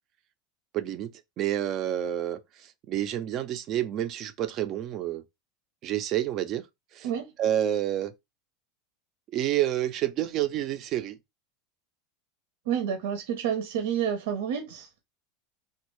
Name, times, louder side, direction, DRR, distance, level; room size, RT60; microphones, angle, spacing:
voice 1, 0.7-1.1 1.4-5.2 5.8-6.7 6.9-7.1 7.4-8.1 9.3-11.2, right 12 dB, 40° right, 0.5 m, -29 dB
voice 2, 12.7-14.9, right 8 dB, 80° right, 0.8 m, -29 dB
3.4 x 2.4 x 3.1 m
supercardioid pair, 140°, 0 cm